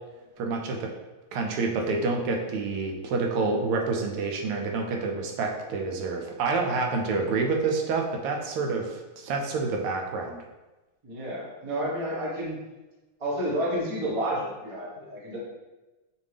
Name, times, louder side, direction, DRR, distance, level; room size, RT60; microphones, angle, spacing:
voice 1, 0.4-0.9 1.3-10.4, right 4 dB, 80° right, 2 dB, 1.5 m, -28 dB
voice 2, 11.0-12.6 13.2-15.4, right 1 dB, 40° right, -5 dB, 0.4 m, -30 dB
5.2 x 2.6 x 3.3 m, 1.1 s
omnidirectional pair, 2.4 m